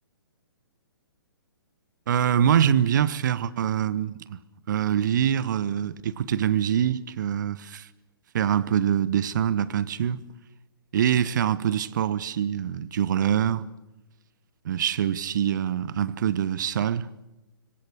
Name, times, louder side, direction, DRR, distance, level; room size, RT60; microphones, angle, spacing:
voice 1, 2.1-4.4 4.7-7.9 8.3-10.2 10.9-13.6 14.6-17.1, right 9 dB, 50° right, 1.1 m, -24 dB
26.5 x 24.0 x 6.6 m
figure-of-eight pair, 125°, 13 cm